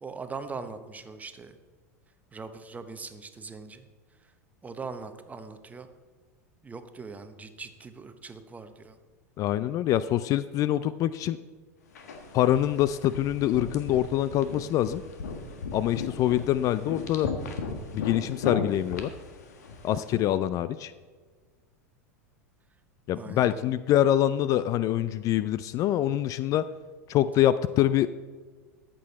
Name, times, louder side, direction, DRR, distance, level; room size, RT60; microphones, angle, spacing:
voice 1, 0.0-1.6 2.3-3.9 4.6-5.9 6.6-9.0 19.9-20.2 23.1-23.7, right 4 dB, 15° right, 9 dB, 1.0 m, -41 dB
voice 2, 9.4-11.4 12.3-15.0 15.7-17.3 17.9-19.1 19.8-20.9 23.1-26.7 27.1-28.1, left 12 dB, 40° left, 15 dB, 0.4 m, -25 dB
sound 1, 12.0-20.1, left 4 dB, 75° left, 1.4 m, -37 dB
13.5 x 7.8 x 4.1 m, 1.5 s
hypercardioid pair, 90°, 9 cm